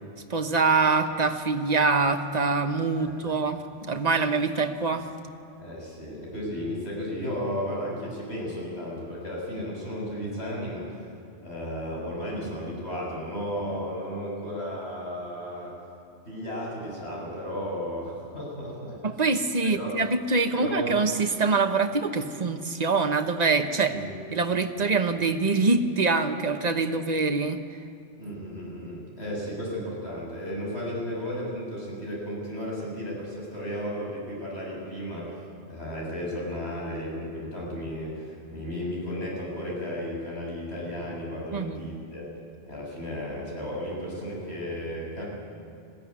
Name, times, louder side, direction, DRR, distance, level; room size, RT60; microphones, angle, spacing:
voice 1, 0.3-3.6 3.9-5.1 19.0-24.0 24.3-27.6 41.5-41.8, right 4 dB, 35° right, 6 dB, 1.2 m, -24 dB
voice 2, 3.0-3.3 5.6-10.9 11.4-15.7 16.3-19.0 19.6-20.0 20.5-20.9 23.9-24.1 28.2-35.3 35.7-42.3 42.7-45.3, equal, 65° left, -4 dB, 7.4 m, -34 dB
20.5 x 16.0 x 9.7 m, 2.6 s
omnidirectional pair, 1.2 m